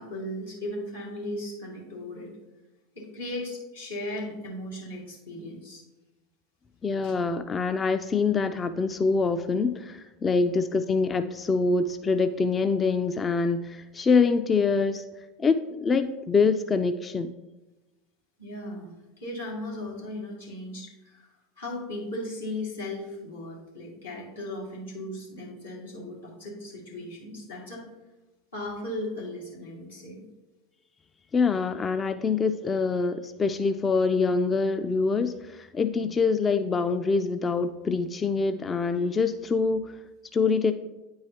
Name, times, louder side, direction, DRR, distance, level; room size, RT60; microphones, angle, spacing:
voice 1, 0.0-2.3 2.9-5.8 7.0-7.1 10.3-10.5 18.4-21.3 21.6-27.9 28.5-30.2 35.9-36.1, left 1 dB, 85° left, -6 dB, 2.1 m, -37 dB
voice 2, 6.8-15.0 15.4-17.3 31.3-39.9 40.3-40.7, left 4 dB, 25° left, 9 dB, 0.3 m, -25 dB
9.1 x 4.7 x 2.8 m, 1.1 s
figure-of-eight pair, 80°, 0 cm